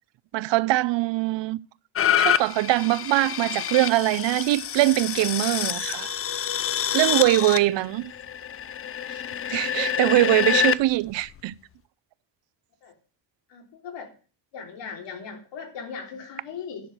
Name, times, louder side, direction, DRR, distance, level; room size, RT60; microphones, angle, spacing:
voice 1, 0.3-1.6 2.2-6.1 6.9-8.1 9.5-11.5, right 17 dB, 75° right, 0.6 m, -22 dB
sound 1, 1.9-10.7 11.4-11.5, left 9 dB, 30° left, 0.5 m, -27 dB
voice 2, 13.5-14.1 14.5-16.9, left 6 dB, 70° left, 3.5 m, -38 dB
10.5 x 6.3 x 7.9 m
cardioid pair, 145°, 44 cm